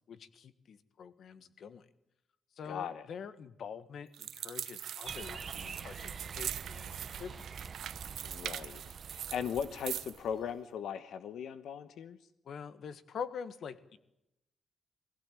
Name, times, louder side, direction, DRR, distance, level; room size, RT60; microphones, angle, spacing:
voice 1, 0.1-1.8 2.5-7.5 12.4-14.0, left 6 dB, 60° left, 13 dB, 1.5 m, -45 dB
voice 2, 2.6-3.1 8.2-12.2, left 8 dB, 90° left, 12 dB, 1.1 m, -38 dB
sound 1, 4.1-10.2, right 10 dB, 85° right, 0.7 m, -42 dB
sound 2, 5.0-10.6, right 6 dB, 40° right, 0.9 m, -46 dB
21.5 x 16.0 x 9.0 m, 0.85 s
wide cardioid pair, 150°, 0 cm